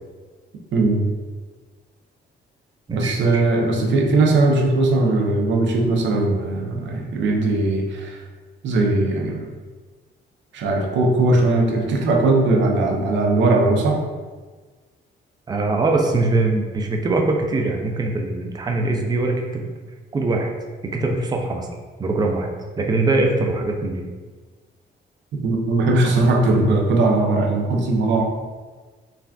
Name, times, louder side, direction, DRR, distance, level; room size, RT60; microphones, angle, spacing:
voice 1, 0.7-1.0 2.9-8.2 8.6-9.4 10.5-14.0 25.4-28.2, right 2 dB, 70° right, 1 dB, 0.6 m, -19 dB
voice 2, 2.9-3.4 15.5-19.6 20.1-20.5 20.9-21.7 22.0-22.5 22.8-24.0 28.1-28.2, right 2 dB, 20° right, 2 dB, 0.4 m, -22 dB
3.3 x 2.4 x 2.3 m, 1.4 s
cardioid pair, 90°, 20 cm